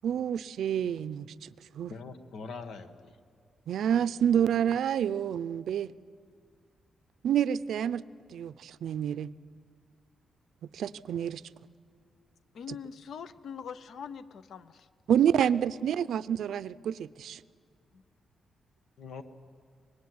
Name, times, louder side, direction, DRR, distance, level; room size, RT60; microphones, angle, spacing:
voice 1, 0.0-1.5 1.8-1.9 3.7-5.9 7.2-8.0 8.3-9.3 10.6-11.4 15.1-17.4, right 9 dB, 75° right, 16 dB, 0.6 m, -28 dB
voice 2, 1.9-3.2 19.0-19.2, left 4 dB, 85° left, 9 dB, 1.5 m, -42 dB
voice 3, 12.5-14.9 17.9-18.0, left 7 dB, 60° left, 14 dB, 0.8 m, -43 dB
24.5 x 20.5 x 9.5 m, 2.1 s
wide cardioid pair, 165°, 0 cm